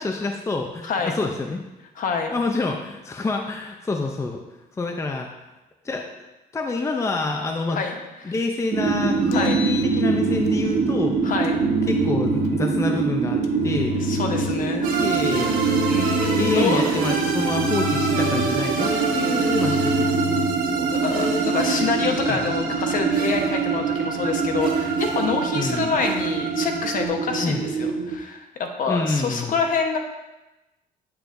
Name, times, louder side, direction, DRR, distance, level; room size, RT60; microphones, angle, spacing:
voice 1, 0.0-1.6 2.3-4.4 4.7-5.3 5.8-6.1 6.5-7.8 8.2-11.2 11.9-14.1 14.6-15.6 16.4-20.4 22.3-22.5 25.5-25.9 27.4-27.7 28.9-29.5, left 3 dB, 15° left, 3 dB, 0.6 m, -27 dB
voice 2, 0.8-1.2 2.0-2.3 7.7-8.3 9.3-9.6 11.2-11.6 14.0-15.0 15.8-17.1 20.7-30.0, left 5 dB, 55° left, 4 dB, 1.1 m, -27 dB
sound 1, 8.7-28.2, right 4 dB, 75° right, 1.1 m, -24 dB
Engine, 9.1-10.6 11.4-12.6 13.4-14.7 15.4-16.7 17.4-18.8 19.4-20.6, left 8 dB, 80° left, 0.6 m, -32 dB
sound 2, 14.8-27.1, right 4 dB, 55° right, 1.8 m, -28 dB
8.8 x 6.9 x 2.6 m, 1.0 s
cardioid pair, 110°, 17 cm